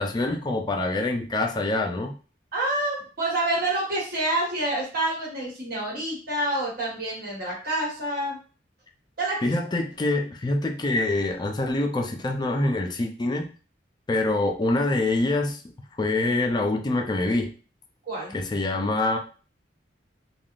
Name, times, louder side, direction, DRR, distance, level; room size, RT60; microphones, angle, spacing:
voice 1, 0.0-2.1 9.4-13.5 14.1-15.6 16.0-17.5 18.3-19.2, left 2 dB, 25° left, 4 dB, 0.4 m, -25 dB
voice 2, 2.5-8.4 9.2-9.5 18.1-18.4, right 1 dB, 55° right, -4 dB, 1.3 m, -27 dB
3.4 x 2.2 x 2.4 m, 0.38 s
head